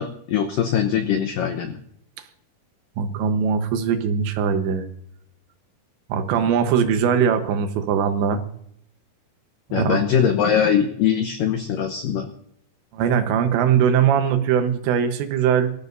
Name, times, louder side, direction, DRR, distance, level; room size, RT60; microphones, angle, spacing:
voice 1, 0.0-1.8 9.7-12.3, left 8 dB, 85° left, 6 dB, 1.9 m, -22 dB
voice 2, 3.0-4.9 6.1-8.4 9.7-10.0 12.9-15.7, right 7 dB, 75° right, 7 dB, 3.3 m, -21 dB
25.5 x 14.5 x 2.7 m, 0.71 s
omnidirectional pair, 5.4 m